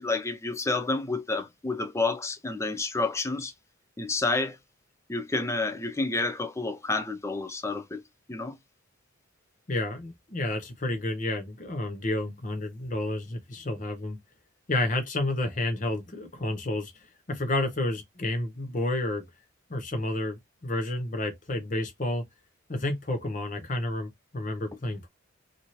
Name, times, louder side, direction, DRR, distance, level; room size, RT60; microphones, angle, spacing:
voice 1, 0.0-3.5 4.0-4.6 5.1-8.0 8.3-8.6, left 3 dB, 15° left, 0.3 m, -29 dB
voice 2, 9.7-14.2 14.7-16.9 17.3-19.2 19.7-22.2 22.7-25.1, left 1 dB, 35° left, 0.7 m, -30 dB
2.8 x 2.5 x 2.9 m
head